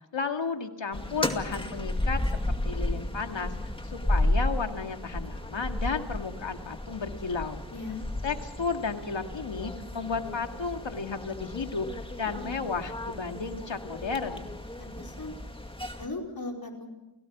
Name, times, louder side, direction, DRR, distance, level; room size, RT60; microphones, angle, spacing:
voice 1, 0.1-3.5 3.8-7.6 8.2-14.5, left 5 dB, 65° left, 5 dB, 2.2 m, -33 dB
sound 1, 0.9-16.1, left 1 dB, 10° left, 2.2 m, -33 dB
voice 2, 7.7-8.0 14.8-15.3 16.0-16.9, left 3 dB, 45° left, 1 dB, 5.0 m, -37 dB
30.0 x 18.0 x 6.1 m, 1.0 s
wide cardioid pair, 65°, 49 cm